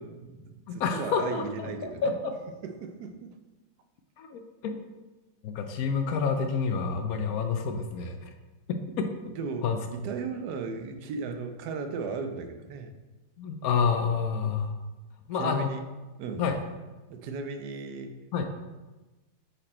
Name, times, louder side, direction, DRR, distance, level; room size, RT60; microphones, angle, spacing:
voice 1, 0.0-2.1 2.6-3.4 9.3-12.9 15.3-15.8 16.2-16.4 17.1-18.2, right 4 dB, 80° right, 7 dB, 1.2 m, -36 dB
voice 2, 0.7-2.3 4.2-4.7 5.4-8.3 8.7-9.3 9.6-9.8 13.4-14.7 15.3-15.7 16.4-16.6 18.3-18.4, left 5 dB, 70° left, 6 dB, 1.0 m, -29 dB
5.3 x 4.3 x 4.2 m, 1.2 s
omnidirectional pair, 1.7 m